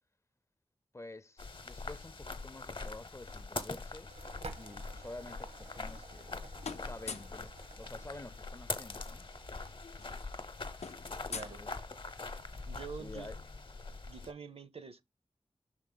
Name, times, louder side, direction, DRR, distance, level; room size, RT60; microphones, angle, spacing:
voice 1, 0.9-4.1 4.6-6.4 6.7-9.3 11.4-11.7 13.0-13.4, left 2 dB, 25° left, 0.4 m, -49 dB
sound 1, 1.4-14.3, left 3 dB, 50° left, 0.7 m, -43 dB
sound 2, 4.1-14.1, right 2 dB, 80° right, 1.1 m, -54 dB
sound 3, 5.6-6.3 6.6-7.4 8.8-8.9 9.1-9.3 9.6-12.3, left 5 dB, 85° left, 0.5 m, -46 dB
voice 2, 11.3-11.6 12.7-13.3 14.1-15.0, right 6 dB, 65° right, 0.7 m, -46 dB
5.9 x 4.4 x 3.8 m
wide cardioid pair, 60°, 11 cm